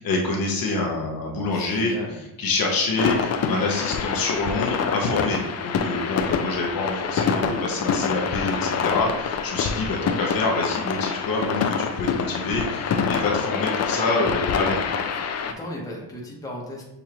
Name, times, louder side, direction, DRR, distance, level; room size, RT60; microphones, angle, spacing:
voice 1, 0.0-1.9 2.4-14.8, left 2 dB, 55° left, -1 dB, 1.0 m, -26 dB
voice 2, 1.5-2.2 15.4-16.8, left 1 dB, 10° left, -3 dB, 1.0 m, -35 dB
sound 1, 3.0-15.5, left 6 dB, 40° left, 0.4 m, -26 dB
6.8 x 2.6 x 2.9 m, 0.90 s
cardioid pair, 120°, 40 cm